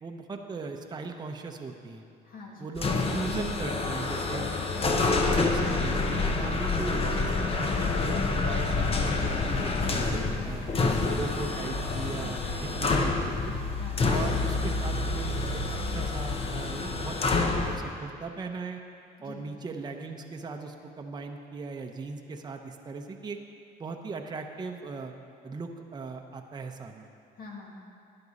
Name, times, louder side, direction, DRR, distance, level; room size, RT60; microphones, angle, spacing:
voice 1, 0.0-2.0 2.6-4.5 4.8-10.6 11.2-13.5 14.0-18.8 19.2-23.4 23.8-25.1 25.4-27.1, right 4 dB, 25° right, 3 dB, 0.7 m, -38 dB
voice 2, 2.2-2.8 10.1-10.9 13.8-14.1 19.2-19.4 27.3-27.8, left 3 dB, 60° left, -2 dB, 2.2 m, -44 dB
sound 1, 2.8-17.8, left 3 dB, 35° left, 0.9 m, -28 dB
12.0 x 9.7 x 4.1 m, 2.5 s
cardioid pair, 110°, 17 cm